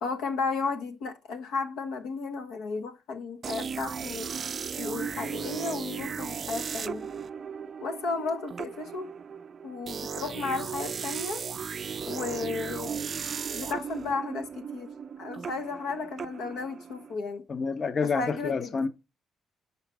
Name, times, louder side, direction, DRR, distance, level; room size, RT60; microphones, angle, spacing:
voice 1, 0.0-4.3 4.8-7.1 7.8-9.1 9.6-11.5 12.1-13.0 13.5-14.9 15.2-17.4 18.0-18.9, left 4 dB, 85° left, 1.0 m, -34 dB
sound 1, 3.4-17.1, right 6 dB, 45° right, 0.4 m, -36 dB
voice 2, 17.5-18.9, left 5 dB, 45° left, 0.8 m, -28 dB
5.7 x 4.5 x 6.0 m
cardioid pair, 90°, 0 cm